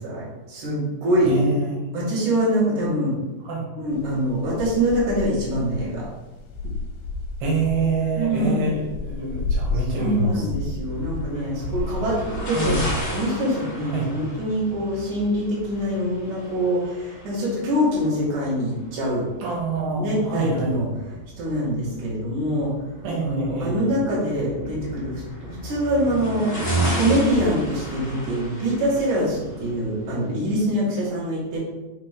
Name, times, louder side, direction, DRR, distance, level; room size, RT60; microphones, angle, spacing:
voice 1, 0.0-1.3 1.9-3.2 3.8-6.0 8.2-8.7 10.0-12.2 12.5-12.8 13.1-19.3 20.0-20.9 21.4-22.7 23.2-31.6, equal, 60° right, -7 dB, 3.5 m, -24 dB
voice 2, 1.2-1.9 3.4-3.7 7.4-10.5 11.3-11.4 12.5-12.9 13.8-14.1 19.4-20.8 23.0-23.8, right 3 dB, 85° right, -4 dB, 3.0 m, -26 dB
sound 1, 4.0-13.0, left 3 dB, 85° left, 2.4 m, -31 dB
sound 2, 10.8-30.6, right 1 dB, 45° left, 0.7 m, -33 dB
6.6 x 3.1 x 5.1 m, 1.1 s
omnidirectional pair, 4.0 m